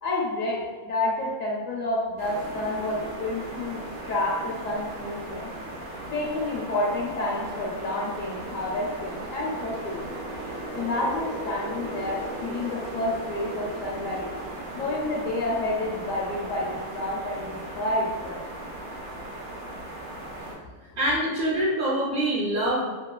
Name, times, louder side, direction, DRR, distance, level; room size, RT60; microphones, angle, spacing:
voice 1, 0.0-5.5 6.1-10.1 10.7-14.3 14.7-18.4, left 2 dB, 70° left, -4 dB, 0.9 m, -29 dB
sound 1, 2.2-20.5, right 1 dB, 85° right, 1.2 m, -37 dB
voice 2, 21.0-22.9, right 1 dB, 50° right, -7 dB, 0.5 m, -25 dB
2.9 x 2.7 x 2.2 m, 1.4 s
omnidirectional pair, 1.5 m